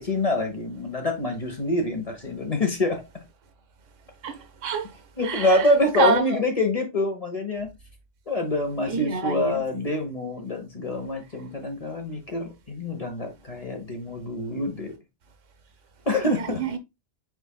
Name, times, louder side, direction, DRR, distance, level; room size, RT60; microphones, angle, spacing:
voice 1, 0.0-3.0 5.2-7.7 8.3-14.9 16.1-16.6, left 2 dB, 35° left, 1.0 m, -26 dB
voice 2, 4.2-4.9 5.2-5.7 5.9-6.4 8.9-9.6 16.2-16.8, right 5 dB, 85° right, 1.2 m, -27 dB
4.7 x 4.2 x 2.2 m
omnidirectional pair, 1.3 m